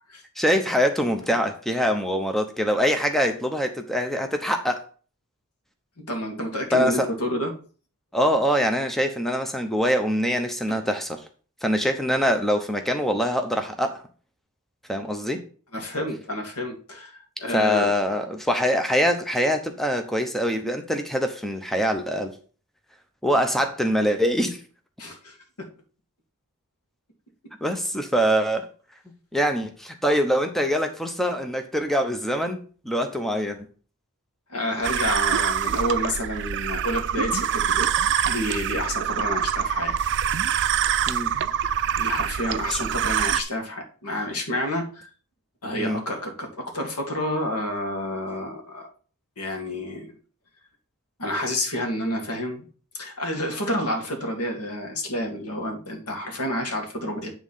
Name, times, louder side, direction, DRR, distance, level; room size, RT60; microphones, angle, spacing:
voice 1, 0.4-4.8 6.7-7.1 8.1-11.2 11.6-14.0 14.9-15.4 17.5-22.4 23.2-24.6 27.6-28.7 29.3-33.7 41.1-41.3 42.7-42.8 45.8-46.0, equal, ahead, 5 dB, 0.8 m, -24 dB
voice 2, 6.0-7.5 10.7-10.8 15.7-17.9 25.0-25.4 34.5-37.9 38.2-40.1 42.0-45.1 45.6-48.9 49.4-50.1 51.2-52.7 52.9-57.3, left 1 dB, 85° left, 2 dB, 2.2 m, -29 dB
sound 1, 34.8-43.4, right 9 dB, 55° right, 0.4 m, -25 dB
9.5 x 3.7 x 5.6 m, 0.40 s
head